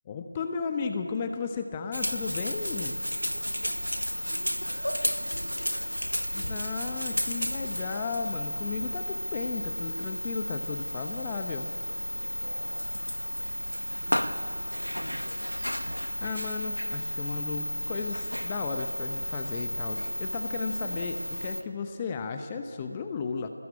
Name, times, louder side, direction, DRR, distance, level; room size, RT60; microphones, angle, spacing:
voice 1, 0.1-3.0 6.3-11.7 16.2-23.5, left 5 dB, 15° left, 6 dB, 0.9 m, -34 dB
sound 1, 1.9-21.6, equal, 85° left, 1.7 m, -33 dB
voice 2, 3.3-7.3 12.2-15.7, right 1 dB, 60° right, 3 dB, 5.8 m, -48 dB
27.0 x 20.5 x 8.5 m, 2.7 s
figure-of-eight pair, 165°, 0 cm